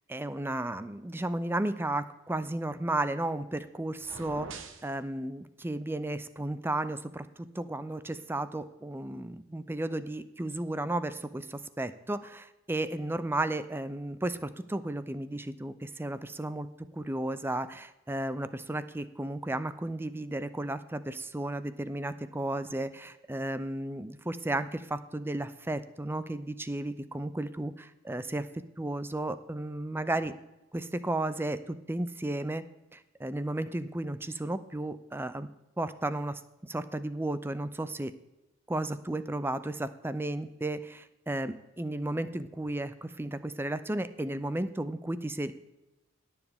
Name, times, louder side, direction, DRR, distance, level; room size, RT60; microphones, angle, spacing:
voice 1, 0.1-7.3 7.5-16.7 16.9-28.5 28.8-30.3 30.7-32.6 32.9-35.5 35.8-38.1 38.7-45.5, right 1 dB, 10° right, 13 dB, 0.5 m, -34 dB
sound 1, 4.0-4.9, right 3 dB, 70° right, 1.2 m, -43 dB
20.5 x 7.2 x 3.6 m, 0.98 s
head